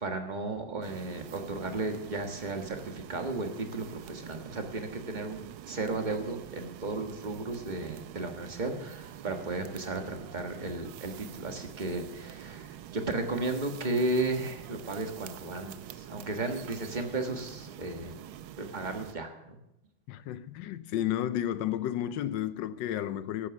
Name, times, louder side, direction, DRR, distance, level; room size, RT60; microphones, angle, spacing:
voice 1, 0.0-18.2 18.6-19.6, right 2 dB, 25° right, 1.3 m, -34 dB
sound 1, 0.8-19.2, right 11 dB, 80° right, 1.5 m, -46 dB
voice 2, 20.1-23.5, left 11 dB, 75° left, 1.1 m, -32 dB
12.5 x 8.8 x 7.0 m
omnidirectional pair, 2.3 m